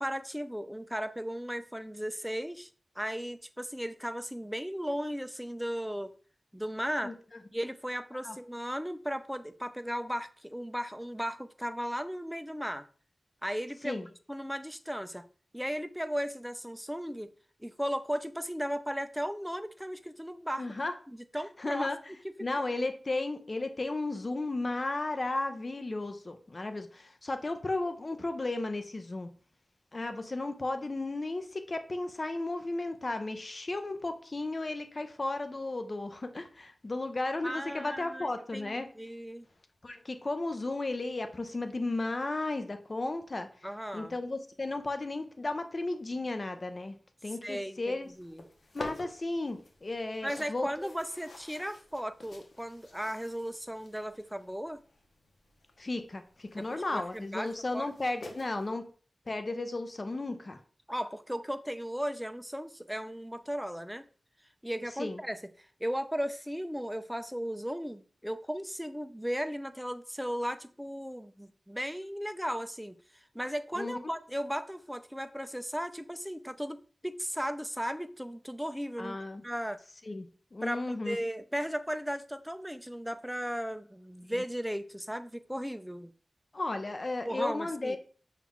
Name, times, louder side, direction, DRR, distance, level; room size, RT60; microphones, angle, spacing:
voice 1, 0.0-2.7 3.0-6.1 6.5-7.1 7.5-12.8 13.4-14.0 14.3-15.2 15.5-17.3 17.6-20.7 21.1-21.9 22.6-22.8 37.4-39.5 43.6-44.2 47.4-48.4 50.2-54.8 56.6-57.9 60.9-64.0 64.6-79.2 79.4-79.8 80.6-86.1 87.2-88.0, equal, ahead, 0.4 m, -36 dB
voice 2, 20.6-20.9 21.6-22.0 22.4-29.3 29.9-38.9 39.8-43.5 43.9-47.0 47.2-48.1 48.7-50.9 55.8-58.8 59.3-60.6 65.0-65.2 73.8-74.0 79.0-79.4 80.1-81.2 86.5-88.0, left 2 dB, 45° left, 0.6 m, -34 dB
sound 1, 48.0-58.7, left 2 dB, 80° left, 0.8 m, -50 dB
5.7 x 2.4 x 3.5 m
wide cardioid pair, 70°, 0 cm